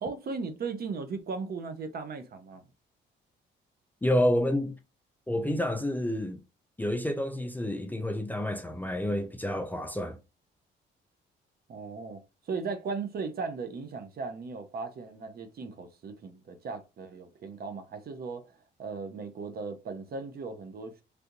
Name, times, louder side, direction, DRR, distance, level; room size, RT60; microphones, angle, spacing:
voice 1, 0.0-2.6 11.7-21.0, right 4 dB, 50° right, 0.7 m, -37 dB
voice 2, 4.0-4.8 5.3-6.4 6.8-10.2, left 1 dB, 10° left, 0.5 m, -29 dB
3.3 x 2.5 x 2.9 m
cardioid pair, 90°, 20 cm